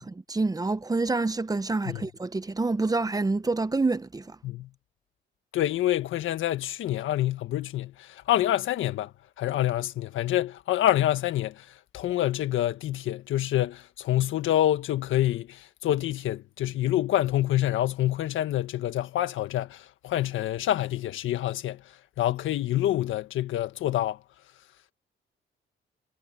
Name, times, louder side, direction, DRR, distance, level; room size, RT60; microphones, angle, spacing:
voice 1, 0.0-4.4, right 3 dB, 20° right, 1.1 m, -27 dB
voice 2, 5.5-9.1 9.4-11.7 11.9-21.8 22.2-24.2, left 13 dB, 80° left, 1.6 m, -27 dB
cardioid pair, 90°, 20 cm